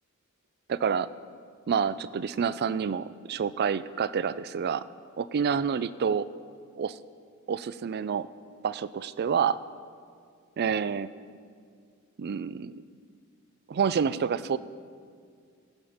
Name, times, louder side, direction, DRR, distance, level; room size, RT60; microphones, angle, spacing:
voice 1, 0.7-1.1 1.7-4.9 5.2-6.3 6.8-7.0 7.5-8.3 8.6-9.6 10.6-11.1 12.2-12.8 13.7-14.6, right 6 dB, 50° right, 16 dB, 0.4 m, -28 dB
20.0 x 7.2 x 5.1 m, 2.1 s
head